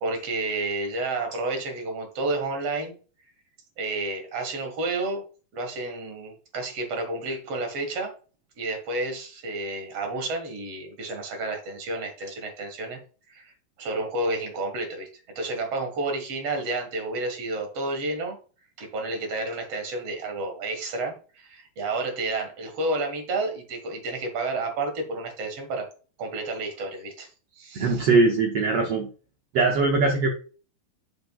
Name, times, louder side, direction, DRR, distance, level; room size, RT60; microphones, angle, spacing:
voice 1, 0.0-3.0 3.8-5.2 5.5-8.1 8.6-13.0 13.3-13.5 13.8-15.1 15.4-18.4 18.8-25.9 26.2-27.3 27.6-28.0, right 2 dB, 50° right, 4 dB, 2.2 m, -30 dB
voice 2, 27.7-29.1 29.5-30.3, right 3 dB, 75° right, 2 dB, 1.4 m, -21 dB
8.9 x 6.7 x 2.3 m, 0.38 s
omnidirectional pair, 4.1 m